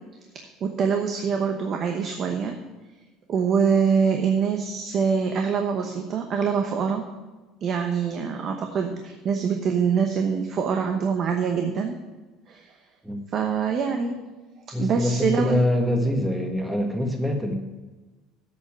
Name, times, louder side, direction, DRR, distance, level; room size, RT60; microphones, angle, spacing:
voice 1, 0.3-2.6 3.3-7.0 7.6-12.0 12.5-12.7 13.3-14.2 14.8-15.6, right 6 dB, 40° right, 4 dB, 1.0 m, -24 dB
voice 2, 14.7-17.5, left 1 dB, 5° right, 3 dB, 1.6 m, -24 dB
8.3 x 6.8 x 8.5 m, 1.2 s
cardioid pair, 135°, 0 cm